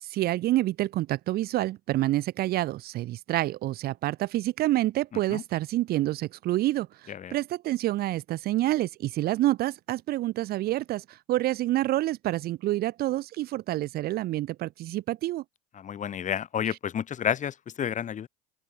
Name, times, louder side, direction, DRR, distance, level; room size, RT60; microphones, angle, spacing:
voice 1, 0.0-15.4 16.7-16.8, right 15 dB, 55° right, 1.0 m, -28 dB
voice 2, 15.8-18.3, left 9 dB, 40° left, 3.7 m, -30 dB
open air
hypercardioid pair, 75°, 19 cm